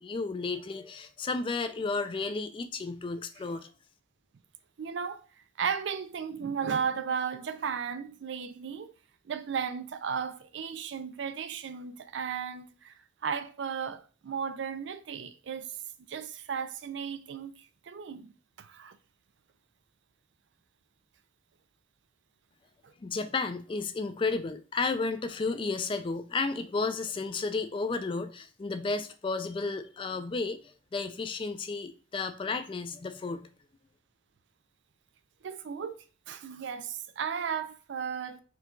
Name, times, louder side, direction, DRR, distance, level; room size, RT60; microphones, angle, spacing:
voice 1, 0.0-3.7 23.0-33.5, left 4 dB, 25° left, 0.3 m, -32 dB
voice 2, 4.8-5.3 5.6-8.9 9.3-12.9 13.2-15.8 16.1-19.0 22.8-22.9 35.4-38.4, right 6 dB, 70° right, 0.4 m, -35 dB
4.6 x 2.3 x 3.8 m
head